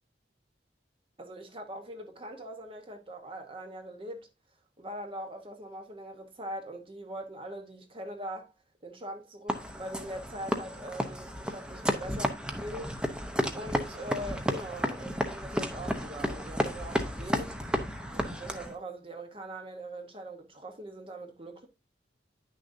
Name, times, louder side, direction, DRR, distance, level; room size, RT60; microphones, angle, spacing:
voice 1, 1.2-4.3 4.8-8.5 8.8-13.0 13.5-17.6 18.1-21.7, right 1 dB, 30° right, 1.0 m, -42 dB
sound 1, 9.5-18.8, equal, 5° right, 0.8 m, -32 dB
9.7 x 6.4 x 2.7 m
head